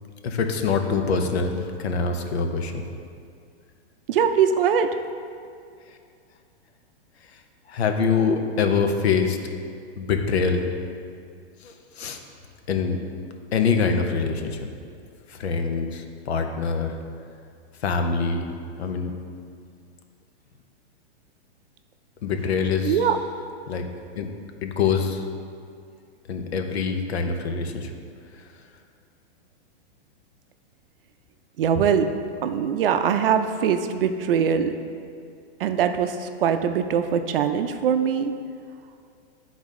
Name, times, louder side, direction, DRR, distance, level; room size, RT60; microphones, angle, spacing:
voice 1, 0.2-2.8 7.3-7.4 7.7-9.4 10.0-10.7 11.6-12.2 12.7-13.0 13.5-14.6 15.3-17.0 17.8-18.5 18.8-19.1 22.2-23.1 23.7-23.9 24.2-24.3 24.6-25.3 26.3-27.9 28.3-28.6, left 5 dB, 70° left, 5 dB, 0.8 m, -24 dB
voice 2, 4.1-4.9 22.8-23.2 31.6-32.1 32.4-34.8 35.6-38.3, right 7 dB, 55° right, 8 dB, 0.5 m, -22 dB
10.5 x 4.0 x 3.6 m, 2.3 s
hypercardioid pair, 165°, 33 cm